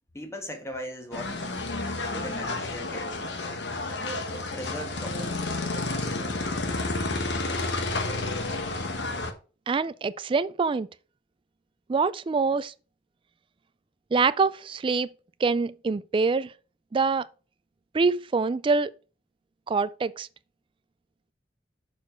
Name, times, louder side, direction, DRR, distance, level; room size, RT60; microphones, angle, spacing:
voice 1, 0.1-1.4 2.1-3.5 4.3-5.4, equal, 15° left, 1.4 m, -39 dB
sound 1, 1.1-9.3, left 2 dB, 70° left, 1.2 m, -30 dB
voice 2, 9.7-10.9 11.9-12.7 14.1-15.1 15.4-16.5 16.9-17.3 17.9-18.9 19.7-20.3, right 4 dB, 30° right, 0.3 m, -25 dB
6.6 x 4.4 x 4.4 m
head